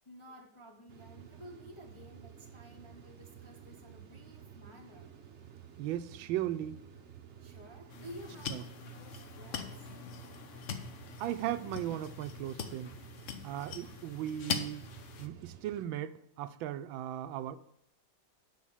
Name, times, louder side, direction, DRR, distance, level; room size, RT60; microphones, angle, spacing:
voice 1, 0.0-5.1 7.4-9.9 13.8-13.9, equal, 25° left, 0 dB, 0.6 m, -52 dB
sound 1, 0.9-15.8, right 8 dB, 55° right, 0.8 m, -53 dB
voice 2, 5.8-6.8 8.5-8.6 11.2-12.9 13.4-14.9 15.2-17.6, right 12 dB, 85° right, 13 dB, 1.3 m, -37 dB
sound 2, 7.9-15.3, left 6 dB, 60° left, 0.8 m, -42 dB
6.3 x 5.9 x 7.1 m, 0.78 s
omnidirectional pair, 2.1 m